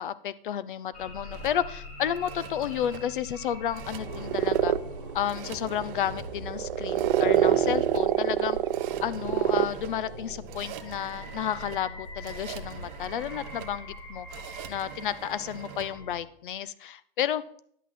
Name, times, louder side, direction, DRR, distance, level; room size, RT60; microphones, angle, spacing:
voice 1, 0.0-4.7 5.1-8.6 9.0-14.3 14.7-17.4, left 10 dB, 60° left, 17 dB, 0.6 m, -32 dB
sound 1, 0.9-16.2, left 1 dB, 40° left, 5.2 m, -42 dB
sound 2, 1.3-15.9, right 11 dB, 15° right, 0.3 m, -45 dB
sound 3, 4.0-10.4, right 11 dB, 65° right, 0.6 m, -26 dB
10.0 x 8.2 x 4.2 m, 0.67 s
hypercardioid pair, 150°, 29 cm